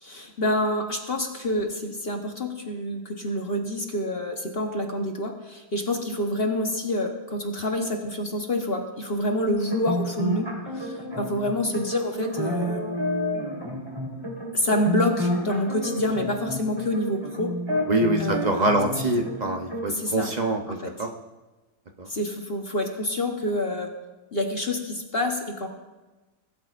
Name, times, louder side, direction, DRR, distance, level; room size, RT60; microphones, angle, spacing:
voice 1, 0.0-10.5 10.7-12.8 14.5-17.6 18.2-18.6 19.9-20.3 20.7-20.9 22.0-23.9 24.3-25.7, left 1 dB, 40° left, 3 dB, 1.1 m, -27 dB
sound 1, 9.5-19.9, left 1 dB, 15° right, 3.5 m, -30 dB
voice 2, 17.9-21.1 22.0-22.1, right 2 dB, 40° right, 3 dB, 0.6 m, -25 dB
20.0 x 12.5 x 2.5 m, 1.1 s
omnidirectional pair, 1.8 m